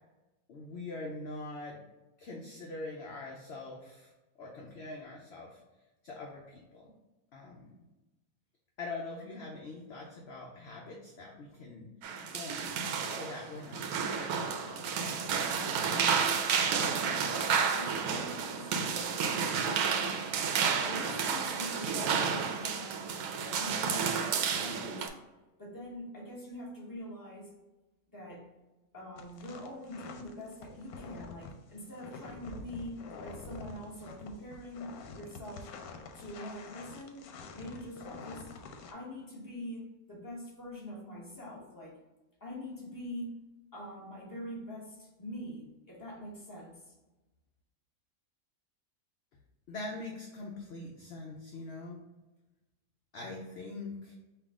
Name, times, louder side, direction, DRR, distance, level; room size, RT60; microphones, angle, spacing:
voice 1, 0.5-1.8 2.2-4.1 4.4-5.6 6.0-6.9 7.3-7.8 8.8-11.9 12.3-15.3 49.7-52.0 53.1-54.1, left 2 dB, 60° left, -1 dB, 0.8 m, -43 dB
sound 1, 12.0-25.1, right 6 dB, 85° right, 1.1 m, -31 dB
voice 2, 17.7-19.1 19.6-20.3 20.9-23.0 23.4-25.1 25.6-27.5 28.1-28.4 28.9-35.7 36.1-37.3 37.5-38.5 38.9-42.0 42.4-43.3 43.7-47.0, left 1 dB, 15° left, -4 dB, 1.1 m, -44 dB
sound 2, 29.2-38.9, left 4 dB, 85° left, 1.1 m, -47 dB
5.7 x 2.4 x 3.6 m, 1.1 s
omnidirectional pair, 1.6 m